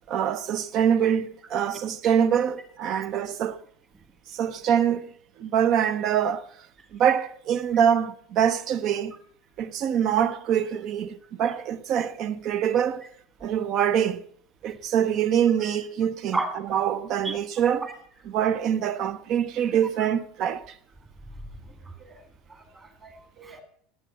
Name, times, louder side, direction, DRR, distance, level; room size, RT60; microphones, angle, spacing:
voice 1, 0.1-3.6 4.3-5.1 5.4-6.5 6.9-9.2 9.6-13.0 13.4-14.2 14.6-16.4 16.7-17.9 18.2-20.8, right 9 dB, 35° right, 0.6 m, -24 dB
voice 2, 21.6-22.2 22.5-23.6, right 3 dB, 15° right, 1.8 m, -34 dB
18.5 x 7.7 x 5.6 m
cardioid pair, 180°, 0 cm